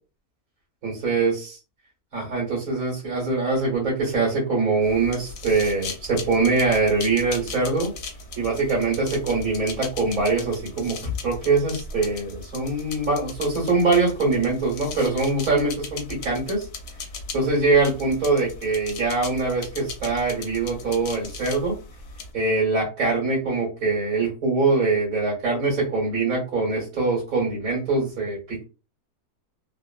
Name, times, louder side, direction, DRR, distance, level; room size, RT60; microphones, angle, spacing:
voice 1, 0.8-1.6 2.1-7.9 8.4-16.7 17.3-21.8 22.3-28.6, right 3 dB, 65° right, -5 dB, 1.7 m, -23 dB
sound 1, 4.8-22.3, left 3 dB, 75° left, 1.1 m, -38 dB
3.4 x 2.0 x 2.2 m, 0.34 s
omnidirectional pair, 1.6 m